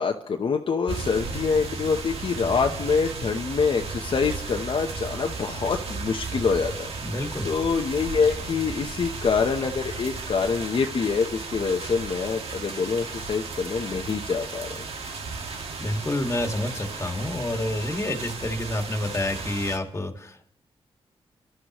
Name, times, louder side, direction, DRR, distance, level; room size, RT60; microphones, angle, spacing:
voice 1, 0.0-6.9 7.4-14.8, left 5 dB, 60° left, 2 dB, 1.0 m, -25 dB
sound 1, 0.9-19.8, right 4 dB, 75° right, 1.7 m, -35 dB
voice 2, 7.0-7.5 15.5-20.5, left 1 dB, 30° left, 4 dB, 2.0 m, -29 dB
28.5 x 12.0 x 3.1 m, 0.68 s
cardioid pair, 85°, 10 cm